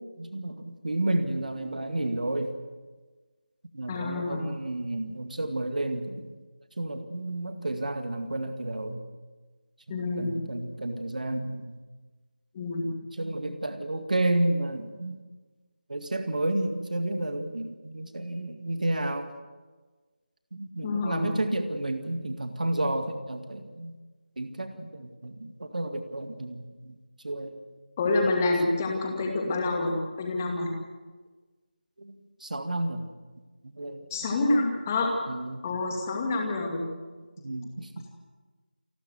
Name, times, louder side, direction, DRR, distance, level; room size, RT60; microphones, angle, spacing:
voice 1, 0.0-2.6 3.7-6.3 6.8-9.0 10.2-11.8 13.2-15.2 15.9-19.3 20.5-24.0 24.4-27.0 27.2-27.6 32.0-33.1 33.8-34.0 35.3-35.6 37.4-38.1, right 1 dB, 50° right, 7 dB, 2.1 m, -31 dB
voice 2, 3.9-4.4 9.9-10.3 12.5-12.9 20.8-21.3 28.0-30.7 34.1-35.1 35.6-36.9, left 2 dB, 15° left, 1 dB, 2.4 m, -27 dB
29.0 x 12.5 x 8.0 m, 1.3 s
figure-of-eight pair, 165°, 5 cm